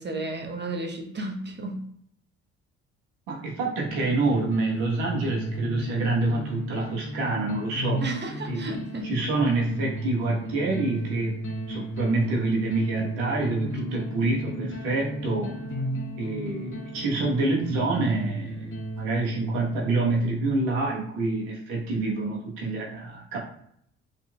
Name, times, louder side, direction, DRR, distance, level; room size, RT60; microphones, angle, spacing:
voice 1, 0.0-1.8 8.0-9.1, right 2 dB, 30° right, 0.9 m, -33 dB
voice 2, 3.3-8.0 8.5-8.7 9.0-15.5 16.2-23.4, right 2 dB, 80° right, 1.2 m, -27 dB
sound 1, 3.9-19.8, right 1 dB, 40° left, 1.1 m, -34 dB
4.0 x 2.9 x 2.2 m
hypercardioid pair, 50°, 33 cm